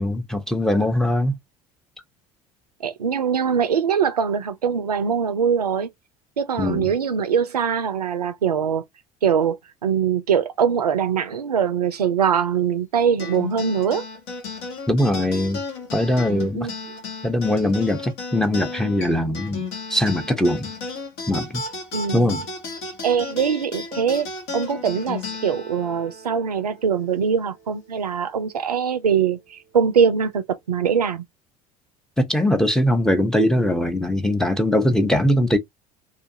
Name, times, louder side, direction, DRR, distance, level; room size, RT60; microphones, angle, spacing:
voice 1, 0.0-1.3 6.6-6.9 14.9-15.6 15.9-16.7 17.2-20.7 21.3-21.6 22.1-22.4 32.2-35.6, left 1 dB, 5° left, 0.7 m, -21 dB
voice 2, 2.8-5.9 6.4-8.8 9.2-9.6 9.8-14.0 16.5-16.7 21.9-22.4 23.0-31.2, right 7 dB, 90° right, 0.4 m, -22 dB
sound 1, 13.2-27.9, left 3 dB, 60° left, 1.3 m, -34 dB
2.7 x 2.4 x 2.6 m
figure-of-eight pair, 65°, 19 cm